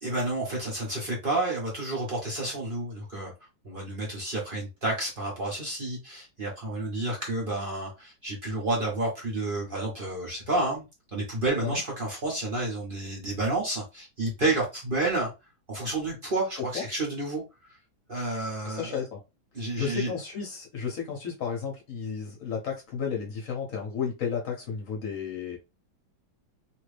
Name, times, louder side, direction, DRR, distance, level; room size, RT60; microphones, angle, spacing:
voice 1, 0.0-3.3 3.6-10.8 11.1-15.3 15.7-17.4 18.1-19.0 19.5-20.1, right 2 dB, 40° right, 0.8 m, -30 dB
voice 2, 18.6-19.2 19.6-25.6, left 6 dB, 60° left, 0.9 m, -33 dB
2.9 x 2.6 x 3.2 m
omnidirectional pair, 2.0 m